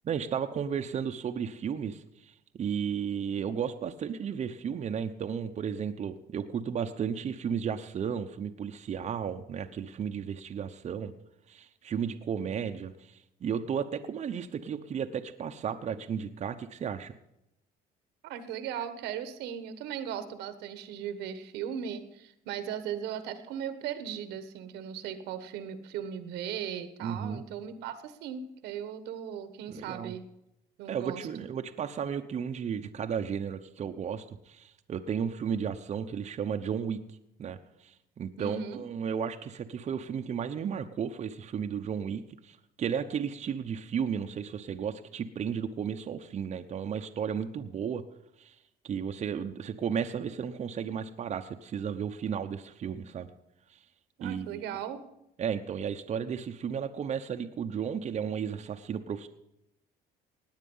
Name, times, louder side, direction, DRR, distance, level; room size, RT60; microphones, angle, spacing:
voice 1, 0.0-11.1 11.5-17.1 27.0-27.4 29.7-30.1 30.9-37.0 37.4-48.0 48.4-48.6 48.8-53.3 53.7-53.8 54.2-54.7 55.4-59.3, right 7 dB, 40° right, 6 dB, 0.9 m, -34 dB
voice 2, 18.2-30.2 30.8-31.2 38.4-38.8 54.2-55.0, right 8 dB, 90° right, 11 dB, 1.3 m, -37 dB
18.0 x 9.0 x 5.5 m, 0.83 s
cardioid pair, 110°, 17 cm